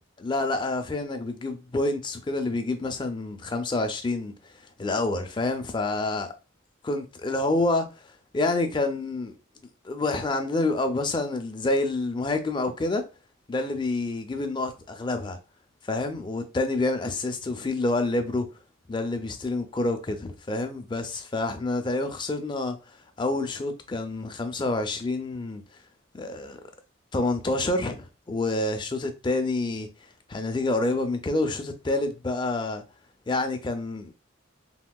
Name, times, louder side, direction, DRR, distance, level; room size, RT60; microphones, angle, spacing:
voice 1, 0.2-4.3 4.8-6.3 6.8-7.9 8.3-9.3 9.8-13.0 13.5-15.4 15.8-18.5 18.9-25.6 26.1-26.6 27.1-29.9 30.3-32.8 33.3-34.1, left 2 dB, 25° left, 0.4 m, -28 dB
3.5 x 2.4 x 2.2 m
head